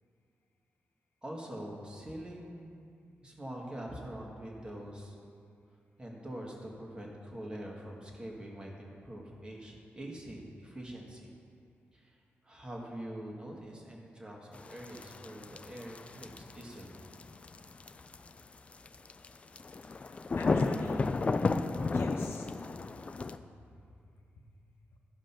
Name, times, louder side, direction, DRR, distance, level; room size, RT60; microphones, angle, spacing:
voice 1, 1.2-2.9 3.2-5.2 6.0-11.3 11.9-12.2 12.4-17.0, right 1 dB, 20° right, -1 dB, 1.7 m, -44 dB
sound 1, 14.5-23.4, left 3 dB, 30° left, 0.3 m, -33 dB
voice 2, 20.4-21.1 21.4-22.5 23.5-23.6 24.4-24.5 24.9-25.0, left 2 dB, 75° left, 2 dB, 1.4 m, -44 dB
14.0 x 5.2 x 5.7 m, 2.4 s
wide cardioid pair, 120°, 4 cm